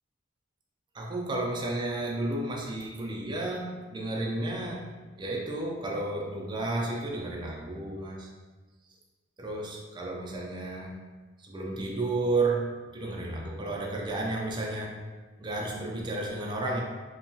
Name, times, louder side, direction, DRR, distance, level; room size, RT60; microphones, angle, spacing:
voice 1, 0.9-4.9 5.2-8.3 9.4-10.9 11.4-14.9 15.4-16.8, right 2 dB, 25° right, -1 dB, 0.4 m, -32 dB
2.8 x 2.2 x 2.6 m, 1.3 s
head